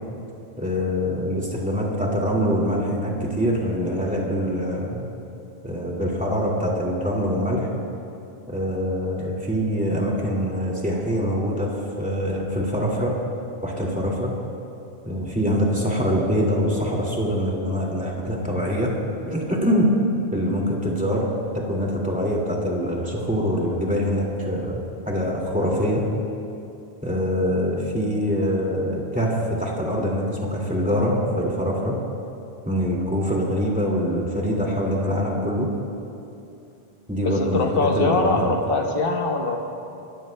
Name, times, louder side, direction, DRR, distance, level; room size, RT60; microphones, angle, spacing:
voice 1, 0.6-5.1 5.6-7.7 8.5-13.2 13.6-14.4 15.1-19.0 19.2-19.9 20.3-21.3 21.5-26.0 27.0-32.0 32.7-35.7 37.1-38.5, equal, 5° right, -3 dB, 2.1 m, -24 dB
voice 2, 37.2-39.6, left 3 dB, 60° left, 2 dB, 1.4 m, -22 dB
27.5 x 14.0 x 2.2 m, 2.7 s
omnidirectional pair, 1.1 m